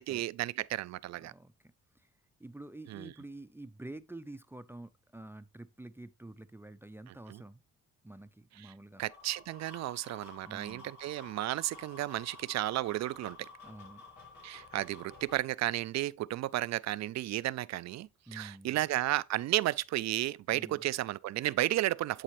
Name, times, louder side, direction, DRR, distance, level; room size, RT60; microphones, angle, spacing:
voice 1, 0.0-1.3 2.9-3.1 7.3-7.4 8.6-8.7 9.0-13.4 14.4-22.2, right 15 dB, 60° right, 0.4 m, -33 dB
voice 2, 1.2-2.1 2.4-7.6 8.0-9.0 10.4-10.9 13.6-14.0 18.3-18.8 20.5-20.8, right 2 dB, 10° right, 0.5 m, -48 dB
sound 1, 8.9-15.4, left 3 dB, 85° left, 2.8 m, -52 dB
10.0 x 4.3 x 3.1 m
cardioid pair, 90°, 30 cm